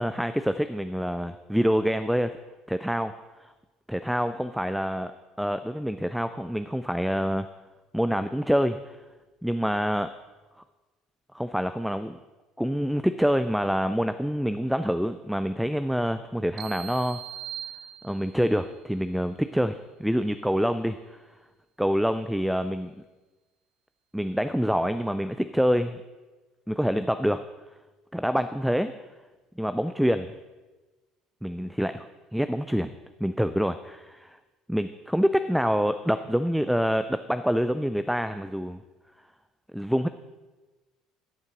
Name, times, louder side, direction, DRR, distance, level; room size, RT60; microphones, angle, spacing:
voice 1, 0.0-2.4 2.7-3.1 3.4-3.5 3.9-5.1 5.4-7.5 7.9-9.0 9.4-10.1 11.3-12.2 12.6-17.2 18.0-21.2 21.8-22.9 24.1-26.0 26.7-27.4 28.1-28.9 29.6-30.3 31.4-32.1 32.3-32.9 33.2-34.4 34.7-38.8 39.7-40.1, equal, ahead, 11 dB, 0.4 m, -26 dB
sound 1, 16.6-18.5, right 10 dB, 55° right, 0.6 m, -40 dB
13.5 x 8.1 x 3.9 m, 1.2 s
figure-of-eight pair, 60°, 0 cm